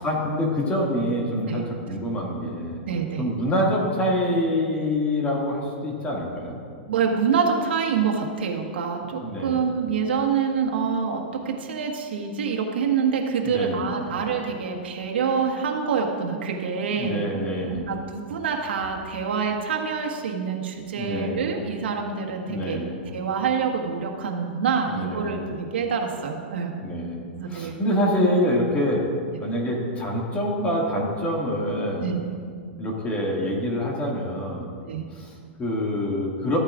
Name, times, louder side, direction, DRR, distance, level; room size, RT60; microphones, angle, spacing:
voice 1, 0.0-2.8 3.2-6.6 9.2-9.7 13.4-14.2 16.9-17.9 21.0-21.4 22.5-23.0 24.9-25.4 26.8-29.0 29.4-32.1 32.8-34.7 35.1-36.6, equal, 20° left, -2 dB, 2.1 m, -26 dB
voice 2, 2.8-3.3 6.9-17.3 17.7-22.8 23.1-26.7 27.3-27.8 32.0-32.4 34.8-35.0, right 6 dB, 80° right, 0 dB, 1.5 m, -26 dB
14.0 x 8.8 x 2.5 m, 2.1 s
hypercardioid pair, 140°, 6 cm